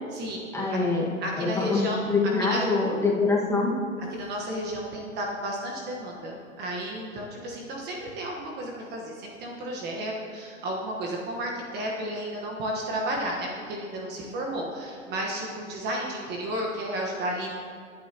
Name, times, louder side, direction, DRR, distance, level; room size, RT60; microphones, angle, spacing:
voice 1, 0.5-1.1 1.4-3.7, left 3 dB, 5° left, -4 dB, 1.7 m, -24 dB
voice 2, 1.2-2.0 2.5-2.7 4.1-17.5, right 1 dB, 25° right, -1 dB, 1.3 m, -32 dB
19.0 x 8.8 x 3.0 m, 2.1 s
hypercardioid pair, 130°, 41 cm